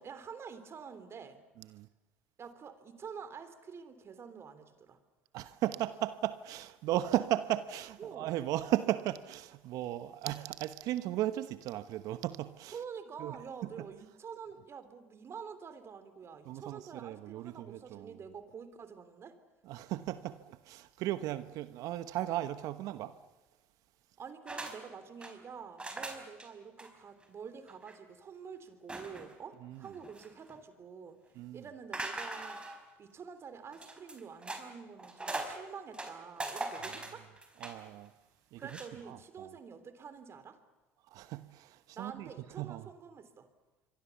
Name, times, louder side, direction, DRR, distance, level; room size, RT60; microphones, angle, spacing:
voice 1, 0.0-1.4 2.4-5.0 8.0-8.3 12.7-19.4 24.2-31.2 31.5-32.6 33.0-37.3 38.6-40.6 41.9-43.5, right 6 dB, 40° right, 3.2 m, -47 dB
voice 2, 1.6-1.9 5.3-12.8 13.2-13.4 13.6-13.9 16.5-18.2 19.6-23.2 29.6-29.9 31.4-31.6 36.8-37.1 37.6-38.1 38.5-38.8 39.1-39.5 41.1-42.3 42.6-42.9, right 14 dB, 65° right, 1.0 m, -36 dB
sound 1, 24.5-24.8 25.0-25.3 25.8-26.5 26.8-26.9 27.2-27.3 27.7-28.0 28.9-29.4 29.8-30.6 31.9-32.8 33.7-34.6 35.0-35.6 35.9-37.9 38.6-38.9, right 2 dB, 15° right, 4.6 m, -41 dB
27.0 x 23.0 x 7.1 m
hypercardioid pair, 75°, 6 cm